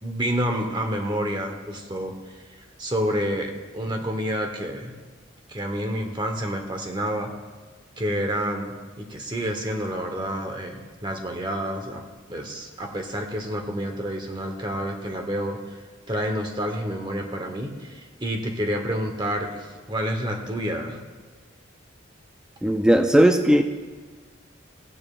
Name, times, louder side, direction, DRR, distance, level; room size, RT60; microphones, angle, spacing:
voice 1, 0.0-4.9 5.5-7.3 8.0-12.0 12.3-15.8 16.1-21.0, equal, 25° right, 3 dB, 1.0 m, -29 dB
voice 2, 22.6-23.6, right 1 dB, 5° right, 5 dB, 0.3 m, -17 dB
16.5 x 8.6 x 2.4 m, 1.4 s
head